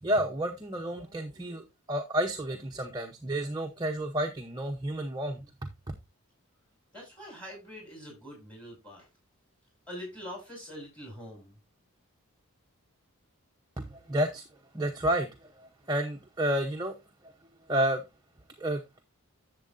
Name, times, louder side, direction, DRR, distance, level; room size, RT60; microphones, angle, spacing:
voice 1, 0.0-5.7 13.8-14.5 14.7-17.0 17.2-17.3 17.7-18.0 18.6-18.8, right 1 dB, 20° right, 0.8 m, -31 dB
voice 2, 6.9-9.1 9.9-11.6, equal, 5° left, 6.3 m, -44 dB
11.0 x 7.5 x 2.6 m
head